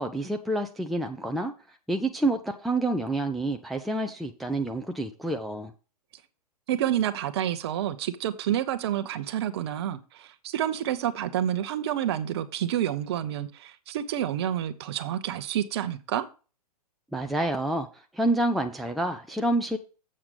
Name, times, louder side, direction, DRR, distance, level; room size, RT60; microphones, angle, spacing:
voice 1, 0.0-1.5 1.9-5.7 17.1-17.9 18.1-19.8, right 1 dB, ahead, 0.5 m, -28 dB
voice 2, 6.7-16.3, right 11 dB, 40° right, 0.9 m, -29 dB
7.7 x 7.1 x 5.0 m
figure-of-eight pair, 110°, 20 cm